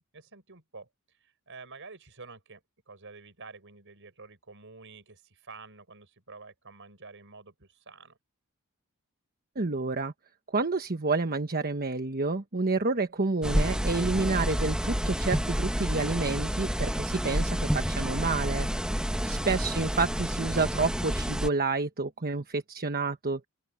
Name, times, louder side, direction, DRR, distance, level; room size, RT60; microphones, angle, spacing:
voice 1, 0.0-8.2, right 4 dB, 60° right, 5.0 m, -49 dB
voice 2, 9.6-10.1 10.5-18.7 19.2-23.4, right 3 dB, 45° right, 1.2 m, -29 dB
sound 1, 13.4-21.5, equal, 5° right, 1.2 m, -29 dB
open air
head